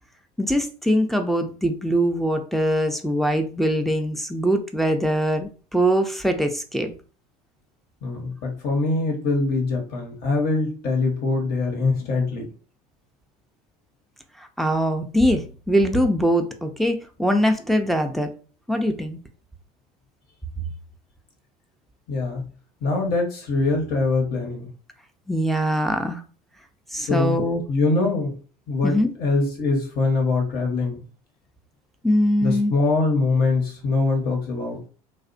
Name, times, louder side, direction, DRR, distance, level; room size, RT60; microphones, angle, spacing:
voice 1, 0.4-6.9 14.4-18.3 18.7-19.2 25.3-26.2 26.9-27.6 28.8-29.1 32.0-32.7, equal, ahead, 5 dB, 0.4 m, -22 dB
voice 2, 8.0-12.5 22.1-22.5 22.8-24.7 27.1-27.4 27.7-28.4 28.7-31.0 32.4-34.8, left 3 dB, 50° left, 2 dB, 1.0 m, -23 dB
2.4 x 2.1 x 2.5 m, 0.38 s
hypercardioid pair, 70°, 20 cm